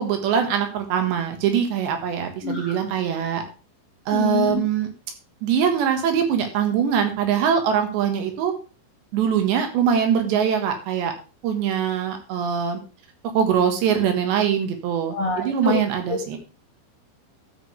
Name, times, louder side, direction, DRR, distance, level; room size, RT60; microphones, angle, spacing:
voice 1, 0.0-3.4 4.1-4.9 5.4-8.5 9.1-11.1 11.4-12.8 13.4-16.4, right 8 dB, 70° right, 6 dB, 3.6 m, -22 dB
voice 2, 2.4-2.7 4.1-4.6 15.1-15.8 16.1-16.2, left 5 dB, 50° left, -2 dB, 1.8 m, -26 dB
13.0 x 9.2 x 3.3 m, 0.33 s
omnidirectional pair, 5.5 m